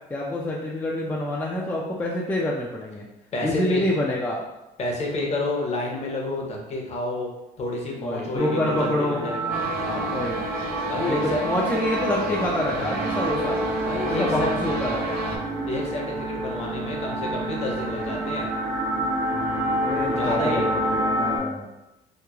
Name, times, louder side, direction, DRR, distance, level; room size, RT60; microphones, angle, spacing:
voice 1, 0.1-3.1 3.4-4.4 8.0-9.3 10.1-10.5 11.0-13.7 14.0-15.2 19.8-21.7, left 1 dB, 10° left, -3 dB, 0.3 m, -27 dB
voice 2, 3.3-3.8 4.8-7.3 7.6-10.1 10.8-11.5 13.9-14.5 15.7-18.5 20.2-20.7, left 2 dB, 40° left, -1 dB, 0.7 m, -29 dB
sound 1, 8.4-21.4, right 1 dB, 85° right, 0.9 m, -29 dB
sound 2, 9.5-15.4, right 1 dB, 65° right, 0.6 m, -30 dB
2.9 x 2.1 x 2.3 m, 0.96 s
cardioid pair, 110°, 17 cm